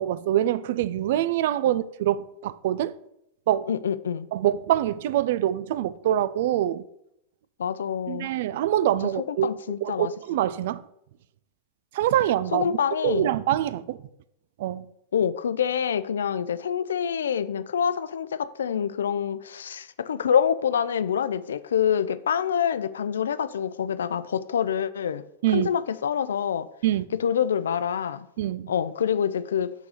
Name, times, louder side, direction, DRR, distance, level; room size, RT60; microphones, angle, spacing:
voice 1, 0.0-2.9 3.5-3.7 4.3-6.8 8.1-9.5 9.8-10.8 11.9-12.7 13.0-14.0 14.6-14.9 25.4-25.7 26.8-27.1 28.4-28.7, right 12 dB, 65° right, 0.3 m, -25 dB
voice 2, 3.7-4.3 7.6-8.3 9.3-10.1 12.5-13.3 15.1-25.2 25.5-26.7 27.1-28.3 28.7-29.7, left 8 dB, 85° left, 0.3 m, -26 dB
6.2 x 4.1 x 4.9 m
hypercardioid pair, 105°, 0 cm